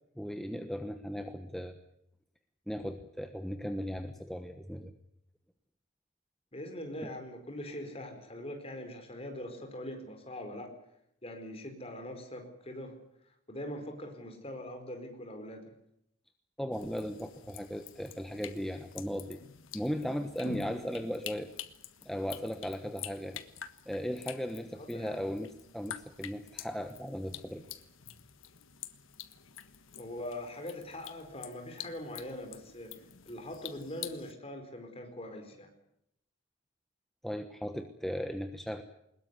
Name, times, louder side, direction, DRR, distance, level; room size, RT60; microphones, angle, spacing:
voice 1, 0.2-1.8 2.7-4.9 7.0-7.1 16.6-19.4 19.7-21.5 22.0-23.4 23.9-27.6 37.2-38.8, equal, ahead, 6 dB, 1.1 m, -37 dB
voice 2, 6.5-10.7 11.2-13.0 13.5-15.7 24.8-25.2 30.0-33.0 33.3-35.7, left 1 dB, 30° left, 6 dB, 4.6 m, -42 dB
sound 1, 16.7-34.3, left 9 dB, 80° left, 1.5 m, -47 dB
21.5 x 21.0 x 8.2 m, 0.77 s
head